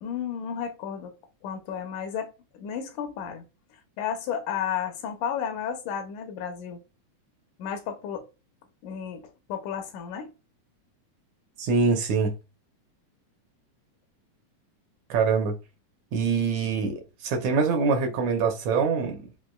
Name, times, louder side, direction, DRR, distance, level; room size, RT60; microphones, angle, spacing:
voice 1, 0.0-1.2 1.4-3.4 4.0-6.8 7.6-8.3 8.8-10.3, left 8 dB, 80° left, 2.2 m, -33 dB
voice 2, 11.6-12.3 15.1-15.5 16.1-19.3, right 5 dB, 75° right, 1.9 m, -24 dB
6.1 x 2.5 x 2.2 m
omnidirectional pair, 3.6 m